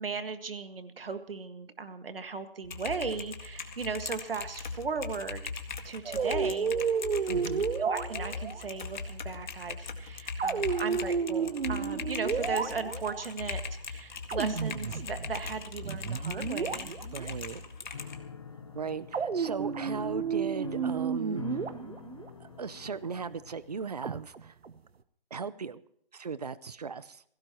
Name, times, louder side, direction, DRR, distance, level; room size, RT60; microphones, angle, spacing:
voice 1, 0.0-5.4 5.8-6.7 7.8-16.9, right 5 dB, 70° right, 9 dB, 1.9 m, -37 dB
Typing, 2.6-18.2, left 4 dB, 50° left, 1.9 m, -39 dB
sound 1, 6.0-8.6 10.4-13.3 14.3-15.6 15.8-17.3 19.1-22.3 24.0-24.8, right 6 dB, 85° right, 1.1 m, -32 dB
voice 2, 7.3-7.7 17.0-17.6 18.7-21.6 22.4-24.5 25.3-25.8 26.1-27.2, right 5 dB, 40° right, 17 dB, 0.7 m, -37 dB
Piano, 17.9-23.8, left 6 dB, 35° left, 0.8 m, -46 dB
21.5 x 16.5 x 3.0 m, 0.66 s
hypercardioid pair, 175°, 30 cm